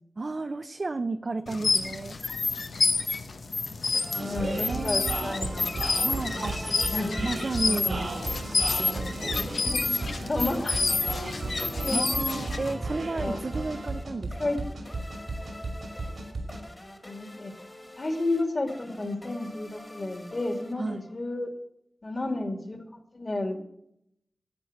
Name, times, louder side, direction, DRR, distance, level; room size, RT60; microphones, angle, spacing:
voice 1, 0.2-2.2 4.6-5.3 6.0-6.7 7.2-8.1 8.5-9.5 11.9-14.5 20.8-21.0, right 3 dB, 50° right, 7 dB, 0.6 m, -33 dB
sound 1, 1.5-12.7, left 4 dB, 80° left, 1.0 m, -29 dB
sound 2, 3.9-21.4, left 1 dB, 20° left, 1.9 m, -47 dB
voice 2, 4.1-5.7 6.1-6.5 6.9-7.1 7.6-8.1 9.4-9.8 10.1-11.0 11.8-12.0 13.1-13.4 14.4-14.6 17.0-17.5 18.0-21.5 22.0-22.8 23.1-23.6, left 2 dB, 45° left, 4 dB, 2.6 m, -32 dB
sound 3, 4.1-16.6, right 2 dB, 85° right, 3.1 m, -34 dB
11.5 x 8.6 x 7.8 m, 0.74 s
wide cardioid pair, 95°, 0 cm